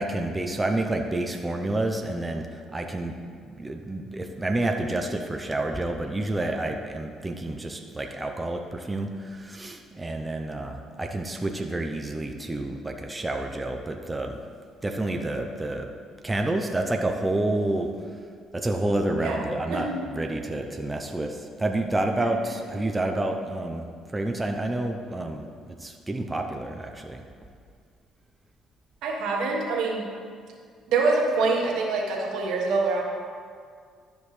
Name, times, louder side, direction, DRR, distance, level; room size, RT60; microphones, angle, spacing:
voice 1, 0.0-3.1 3.4-14.4 14.8-15.9 16.2-17.9 18.5-23.8 24.1-27.2, right 2 dB, 15° right, 3 dB, 0.6 m, -29 dB
voice 2, 19.2-20.0 29.0-30.0 30.9-33.0, right 3 dB, 75° right, 0 dB, 1.4 m, -25 dB
12.0 x 5.2 x 3.2 m, 2.1 s
cardioid pair, 85°, 0 cm